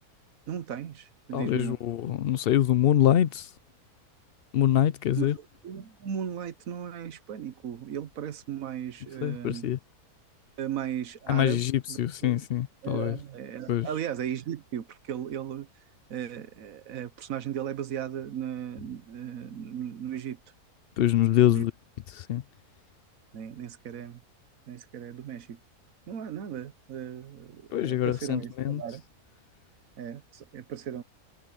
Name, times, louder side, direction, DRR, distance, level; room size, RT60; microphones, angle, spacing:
voice 1, 0.5-1.8 5.2-5.3 5.6-9.7 10.6-12.4 12.8-15.7 16.1-20.4 21.5-21.6 23.3-24.2 24.7-25.6 26.1-29.0 30.0-31.0, right 9 dB, 65° right, 1.3 m, -36 dB
voice 2, 1.3-3.5 4.5-5.4 9.2-9.8 11.3-13.2 13.7-13.9 21.0-21.7 22.1-22.4 27.7-28.8, left 11 dB, 80° left, 0.5 m, -25 dB
omnidirectional pair, 1.6 m